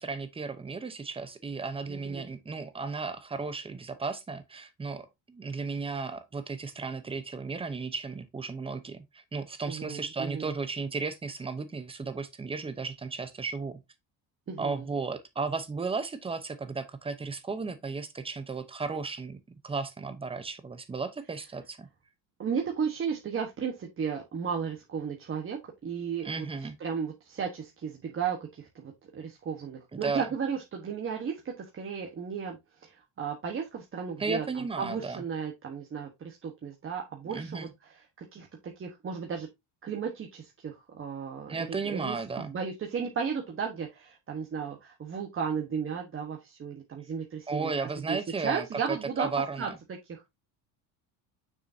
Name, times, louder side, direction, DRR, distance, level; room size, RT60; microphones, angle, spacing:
voice 1, 0.0-13.8 14.6-19.4 19.6-21.9 26.2-26.8 29.9-30.3 34.2-35.2 37.3-37.7 41.5-42.5 47.5-49.8, right 4 dB, 10° right, 0.8 m, -34 dB
voice 2, 1.9-2.3 9.7-10.5 14.5-14.8 22.4-26.5 26.8-37.9 38.2-38.5 38.8-39.5 39.8-48.2 48.4-49.3 49.6-49.7 50.1-50.3, right 6 dB, 30° right, 1.3 m, -34 dB
6.7 x 6.4 x 2.7 m
cardioid pair, 135°, 44 cm